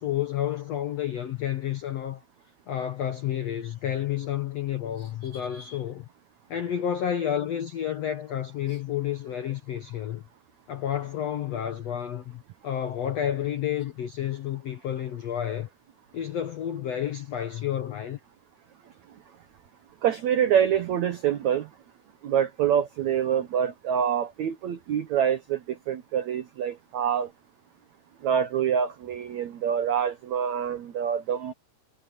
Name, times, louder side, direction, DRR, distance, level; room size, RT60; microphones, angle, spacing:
voice 1, 0.0-2.2 2.7-6.1 6.5-10.2 10.7-15.7 16.1-18.2, left 10 dB, 85° left, 1.4 m, -30 dB
voice 2, 5.3-5.8 20.0-21.7 22.2-27.3 28.2-31.5, right 8 dB, 80° right, 1.6 m, -26 dB
omnidirectional pair, 4.8 m